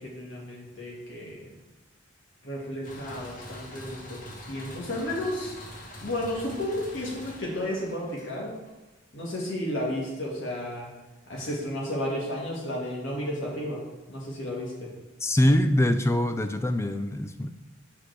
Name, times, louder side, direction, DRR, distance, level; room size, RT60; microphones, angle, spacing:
voice 1, 0.0-1.5 2.4-5.6 6.0-8.5 9.1-10.9 11.3-13.8 14.1-14.9, left 1 dB, 70° left, -4 dB, 2.2 m, -33 dB
sound 1, 2.8-8.7, left 1 dB, 40° left, 1.7 m, -44 dB
voice 2, 15.2-17.5, left 1 dB, 15° left, 9 dB, 0.4 m, -23 dB
5.8 x 5.1 x 6.7 m, 1.1 s
head